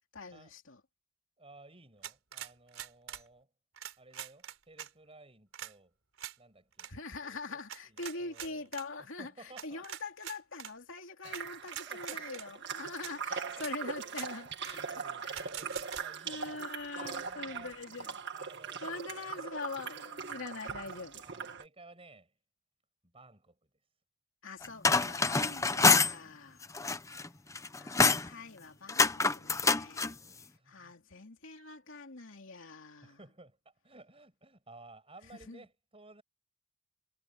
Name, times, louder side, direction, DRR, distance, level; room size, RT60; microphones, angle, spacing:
voice 1, 0.1-0.8 6.9-15.5 15.9-16.0 16.2-18.2 18.8-21.2 24.4-26.7 27.0-27.1 27.7-30.1 30.7-33.2 35.5-35.6, left 3 dB, 60° left, 3.2 m, -44 dB
voice 2, 1.4-3.5 4.0-5.9 6.4-7.6 7.9-8.7 9.0-9.9 11.6-13.0 13.4-14.5 14.8-16.7 17.0-17.7 18.3-19.5 20.4-20.7 21.2-22.3 23.1-23.6 27.1-27.3 27.6-27.9 30.1-30.9 33.0-36.2, right 2 dB, 25° right, 6.9 m, -56 dB
sound 1, 2.0-3.3 3.8-4.9 5.5-5.7 6.2-6.4 6.7-6.9 7.7-8.9 9.6-10.7 11.3-11.4 11.7-12.5 13.0-13.1 13.5-13.7 14.1-14.3 14.6-14.8 15.3-16.0, right 10 dB, 70° right, 4.2 m, -44 dB
sound 2, 11.2-21.6, right 6 dB, 55° right, 1.7 m, -41 dB
sound 3, 24.6-26.1 26.6-27.3 27.6-28.3 28.9-30.1, left 4 dB, 15° left, 0.7 m, -26 dB
head